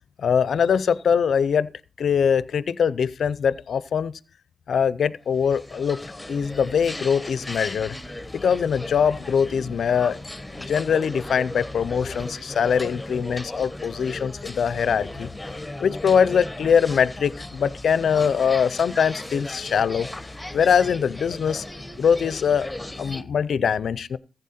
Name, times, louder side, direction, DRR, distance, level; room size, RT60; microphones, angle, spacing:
voice 1, 0.2-1.7 2.0-4.1 4.7-8.0 8.3-10.2 10.5-15.3 15.8-20.1 20.5-21.6 22.0-22.7 23.0-24.2, left 7 dB, 75° left, 0.5 m, -22 dB
sound 1, 5.3-23.2, left 1 dB, 10° left, 1.3 m, -36 dB
14.5 x 8.0 x 4.3 m
supercardioid pair, 45°, 0 cm